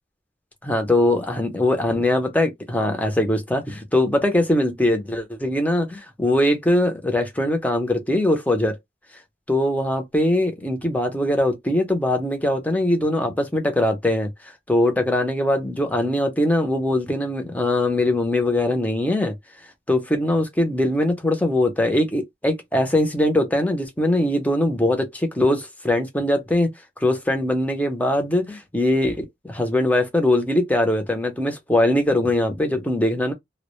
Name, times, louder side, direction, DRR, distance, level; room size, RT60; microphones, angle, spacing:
voice 1, 0.6-8.8 9.5-14.3 14.7-19.3 19.9-26.7 27.0-33.3, left 1 dB, 10° left, 0.6 m, -21 dB
2.0 x 2.0 x 2.9 m
head